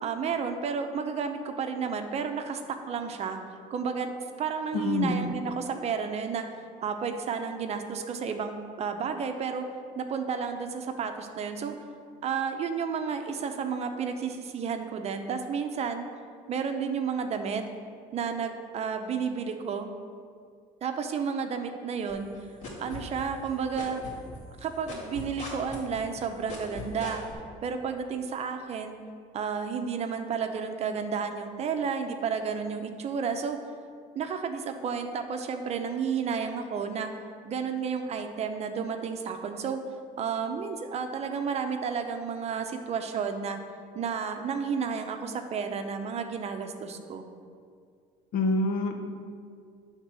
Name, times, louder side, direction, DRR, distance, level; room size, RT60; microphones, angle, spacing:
voice 1, 0.0-3.4 3.7-6.5 6.8-9.7 9.9-11.8 12.2-16.0 16.5-17.6 18.1-19.9 20.8-22.3 22.8-24.0 24.6-27.2 27.6-29.0 29.3-33.6 34.1-37.1 37.4-39.8 40.2-43.6 43.9-47.3, right 6 dB, 45° right, 6 dB, 0.7 m, -31 dB
voice 2, 4.7-5.2 48.3-49.0, left 2 dB, 65° left, 5 dB, 0.9 m, -26 dB
sound 1, 22.1-23.5 23.7-27.3, left 2 dB, 50° left, 2.3 m, -39 dB
9.6 x 3.7 x 6.1 m, 2.1 s
cardioid pair, 115°, 15 cm